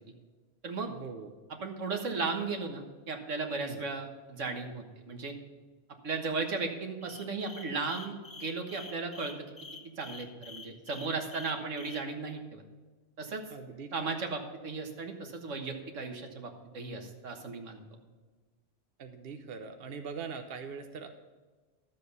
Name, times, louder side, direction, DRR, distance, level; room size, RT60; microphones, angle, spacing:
voice 1, 0.9-1.3 3.6-3.8 13.5-13.9 19.0-21.1, right 5 dB, 55° right, 6 dB, 1.0 m, -42 dB
voice 2, 1.6-5.3 6.0-9.5 10.0-12.6 13.2-13.5 13.9-17.8, right 4 dB, 80° right, 4 dB, 1.7 m, -36 dB
sound 1, 7.0-12.0, left 4 dB, 20° left, 1.0 m, -47 dB
12.5 x 7.4 x 5.4 m, 1.3 s
omnidirectional pair, 1.3 m